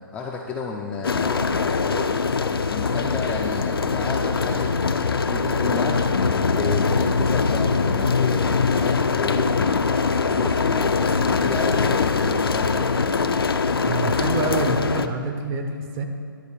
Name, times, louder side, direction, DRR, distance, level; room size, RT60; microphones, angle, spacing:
voice 1, 0.1-2.3 2.7-6.1 6.5-9.7 10.2-12.9, left 4 dB, 10° left, -2 dB, 0.4 m, -32 dB
sound 1, 1.0-15.1, left 4 dB, 80° left, 0.5 m, -22 dB
voice 2, 13.8-16.0, right 3 dB, 25° right, 5 dB, 0.8 m, -27 dB
11.0 x 4.0 x 6.9 m, 2.3 s
figure-of-eight pair, 135°, 12 cm